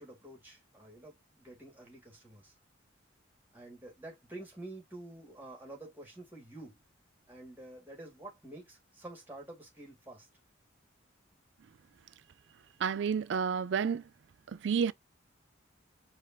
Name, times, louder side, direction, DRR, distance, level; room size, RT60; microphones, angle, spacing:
voice 1, 0.0-2.5 3.5-6.8 7.3-10.3, right 2 dB, 10° right, 2.2 m, -49 dB
voice 2, 12.8-14.0 14.5-14.9, right 6 dB, 70° right, 0.4 m, -30 dB
4.9 x 2.8 x 2.8 m
head